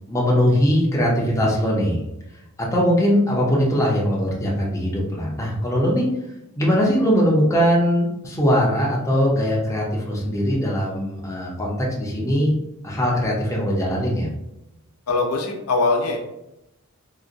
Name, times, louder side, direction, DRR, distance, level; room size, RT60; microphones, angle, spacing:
voice 1, 0.1-2.0 2.6-6.1 6.6-12.5 12.8-14.3, equal, 15° left, -4 dB, 0.6 m, -20 dB
voice 2, 15.1-16.2, left 3 dB, 85° left, 2 dB, 0.6 m, -21 dB
3.9 x 2.2 x 2.5 m, 0.88 s
head